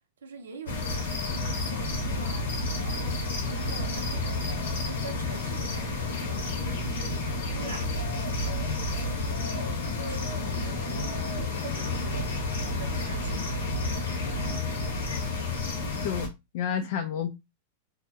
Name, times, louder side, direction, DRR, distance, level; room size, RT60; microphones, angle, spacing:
voice 1, 0.2-11.0 11.5-12.3 12.7-14.8, right 5 dB, 80° right, 0.6 m, -46 dB
sound 1, 0.7-16.3, left 2 dB, 80° left, 0.9 m, -30 dB
voice 2, 16.0-17.3, left 8 dB, 60° left, 0.3 m, -30 dB
2.5 x 2.0 x 2.7 m
hypercardioid pair, 105°, 0 cm